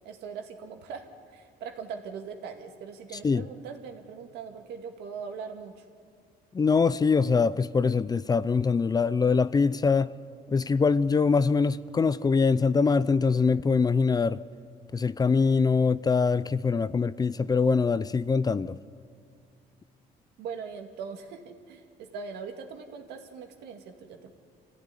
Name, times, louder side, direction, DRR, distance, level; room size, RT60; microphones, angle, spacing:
voice 1, 0.0-5.8 20.4-24.3, right 6 dB, 80° right, 2.3 m, -41 dB
voice 2, 6.5-10.1 10.5-14.4 14.9-18.8, left 5 dB, 25° left, 0.5 m, -23 dB
26.0 x 15.5 x 9.9 m
cardioid pair, 110°, 17 cm